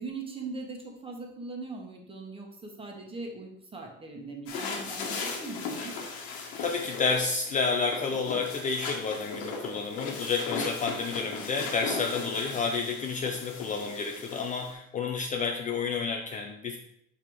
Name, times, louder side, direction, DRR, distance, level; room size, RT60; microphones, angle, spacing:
voice 1, 0.0-5.9, right 3 dB, 15° right, 1 dB, 1.4 m, -40 dB
sound 1, 4.5-14.7, left 4 dB, 85° left, 1.5 m, -37 dB
voice 2, 6.6-16.8, left 4 dB, 25° left, 3 dB, 0.5 m, -30 dB
5.6 x 4.7 x 4.7 m, 0.75 s
supercardioid pair, 125°, 32 cm